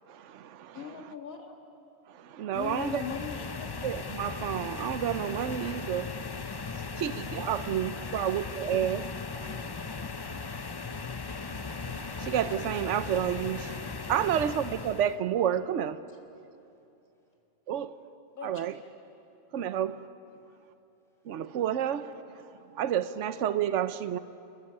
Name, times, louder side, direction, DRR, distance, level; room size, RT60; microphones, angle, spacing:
voice 1, 0.1-0.8 2.2-3.0 3.8-6.1 7.0-9.0 11.4-16.0 17.7-17.9 18.4-18.8 19.5-20.0 21.3-22.1 22.8-24.2, right 10 dB, 65° right, 1.0 m, -30 dB
voice 2, 0.7-1.5 2.5-3.7 18.3-18.6, left 6 dB, 90° left, 2.1 m, -38 dB
sound 1, 2.5-15.2, left 4 dB, 40° left, 0.3 m, -38 dB
voice 3, 7.9-8.5 9.3-10.5, left 2 dB, ahead, 5.3 m, -54 dB
28.0 x 14.5 x 9.9 m
omnidirectional pair, 1.4 m